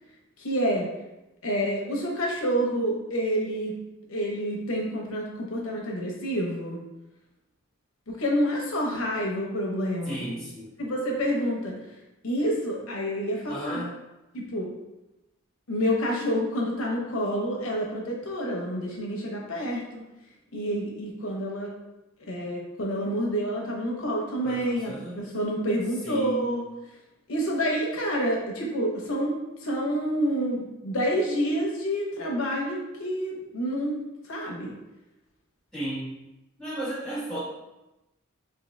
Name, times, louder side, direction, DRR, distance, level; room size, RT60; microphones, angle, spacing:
voice 1, 0.4-0.9 1.4-3.7 4.1-6.8 8.1-10.3 10.8-11.7 12.2-13.8 14.3-14.7 15.7-20.0 20.5-21.7 22.3-26.7 27.3-29.3 29.6-34.7, equal, 85° left, -1 dB, 0.7 m, -28 dB
voice 2, 10.0-10.7 13.5-13.9 24.4-25.3 26.0-26.5 35.7-36.2 36.6-37.4, right 1 dB, 5° left, -9 dB, 1.5 m, -34 dB
3.6 x 2.7 x 3.2 m, 0.96 s
head